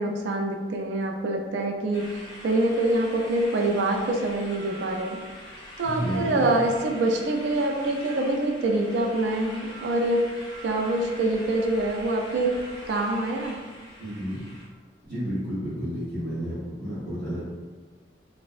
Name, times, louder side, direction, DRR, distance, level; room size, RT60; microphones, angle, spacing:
voice 1, 0.0-5.2 5.8-10.2 10.6-12.6 12.9-13.6, right 2 dB, 85° right, 2 dB, 0.4 m, -25 dB
sound 1, 1.9-14.7, equal, 25° left, 0.5 m, -43 dB
voice 2, 5.8-6.5 14.0-14.4 15.0-17.4, equal, 55° right, -15 dB, 0.9 m, -31 dB
2.6 x 2.0 x 2.4 m, 1.4 s
head